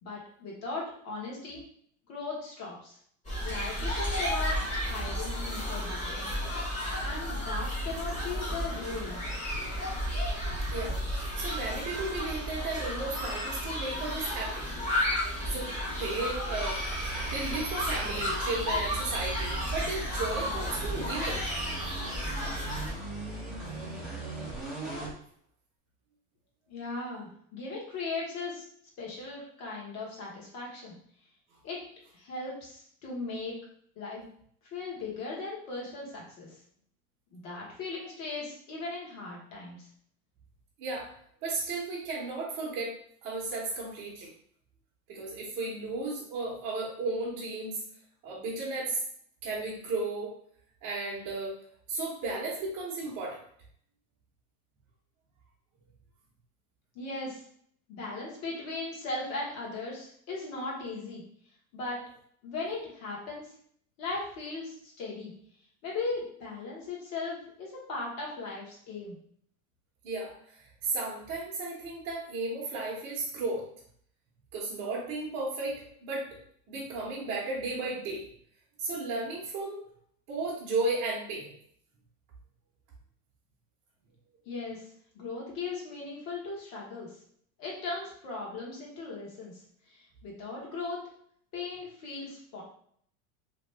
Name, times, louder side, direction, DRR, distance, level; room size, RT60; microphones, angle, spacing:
voice 1, 0.0-1.6 2.1-3.0 3.4-6.3 7.0-9.2 26.7-28.7 29.0-30.9 31.6-31.8 32.1-33.6 34.0-34.2 34.7-36.6 37.3-39.9 56.9-57.4 57.9-61.2 61.7-62.0 62.4-63.5 64.0-65.3 65.8-69.2 84.5-84.8 85.1-87.2 87.6-91.1 91.5-92.6, left 3 dB, 40° left, -3 dB, 1.2 m, -38 dB
sound 1, 3.2-22.9, equal, 15° left, 1.0 m, -33 dB
voice 2, 10.7-14.7 15.5-16.8 17.2-21.4 40.8-41.1 41.4-42.9 43.2-44.3 45.1-47.8 48.2-49.0 49.4-50.3 50.8-51.6 51.9-53.4 70.0-73.6 74.5-76.3 76.7-78.3 78.8-79.8 80.3-81.5, right 3 dB, 35° right, -6 dB, 0.9 m, -34 dB
sound 2, 16.5-25.2, right 2 dB, ahead, 0.6 m, -38 dB
3.0 x 2.4 x 3.3 m, 0.63 s
supercardioid pair, 150°, 43 cm